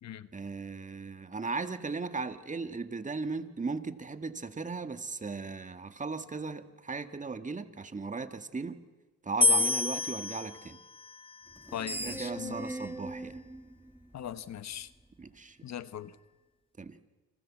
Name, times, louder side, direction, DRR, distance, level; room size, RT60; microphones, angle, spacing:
voice 1, 0.3-8.8 9.2-10.8 12.0-13.4 15.2-15.6 16.8-17.0, right 4 dB, 25° right, 1.8 m, -37 dB
sound 1, 9.4-12.6, left 2 dB, 20° left, 0.9 m, -30 dB
Screech, 11.5-14.7, right 1 dB, 5° right, 2.0 m, -41 dB
voice 2, 11.7-12.7 14.1-14.9 15.6-16.1, left 10 dB, 60° left, 1.3 m, -40 dB
30.0 x 26.0 x 7.5 m
cardioid pair, 90°, 30 cm